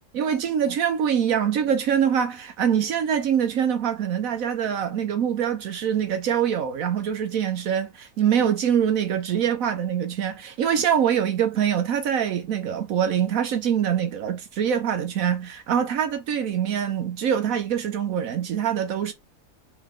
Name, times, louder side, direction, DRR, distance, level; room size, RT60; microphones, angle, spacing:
voice 1, 0.1-19.1, right 8 dB, 75° right, 1.2 m, -24 dB
4.6 x 3.2 x 3.6 m
omnidirectional pair, 1.5 m